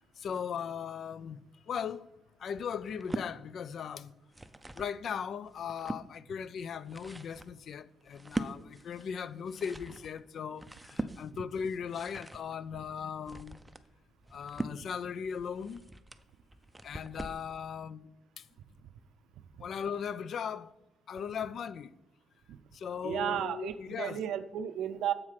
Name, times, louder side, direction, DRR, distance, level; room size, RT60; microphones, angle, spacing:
voice 1, 0.2-2.1 2.4-4.1 4.8-13.6 14.3-15.8 16.8-18.5 19.6-20.7 21.1-21.9 22.7-24.2, left 7 dB, 60° left, 0.3 m, -38 dB
sound 1, 2.8-3.3 4.1-5.0 5.4-6.1 6.6-17.5, right 1 dB, 10° right, 0.4 m, -42 dB
voice 2, 23.0-25.1, right 10 dB, 80° right, 0.4 m, -33 dB
7.4 x 4.7 x 5.7 m
cardioid pair, 90°, 0 cm